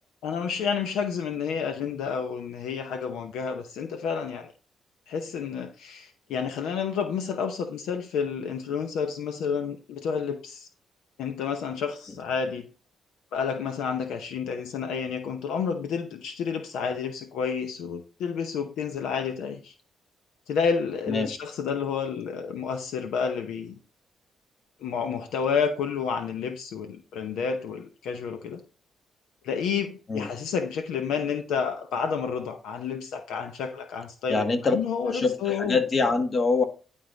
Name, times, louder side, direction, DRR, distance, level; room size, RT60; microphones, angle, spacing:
voice 1, 0.2-4.5 5.1-10.7 11.2-12.7 13.3-19.7 20.5-23.8 24.8-28.6 29.4-34.4 34.7-35.8, left 6 dB, 85° left, 0.8 m, -30 dB
voice 2, 34.3-34.8 35.1-36.6, left 4 dB, 45° left, 1.4 m, -24 dB
10.5 x 3.6 x 3.9 m
cardioid pair, 70°, 0 cm